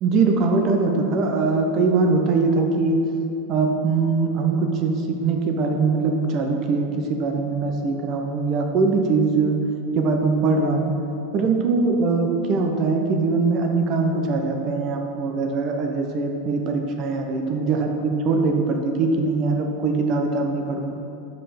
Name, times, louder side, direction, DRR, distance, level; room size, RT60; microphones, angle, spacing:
voice 1, 0.0-3.1 3.5-9.6 9.9-10.9 11.3-20.9, right 4 dB, 45° right, 3 dB, 0.7 m, -22 dB
5.3 x 5.3 x 4.3 m, 2.7 s
hypercardioid pair, 105°, 0 cm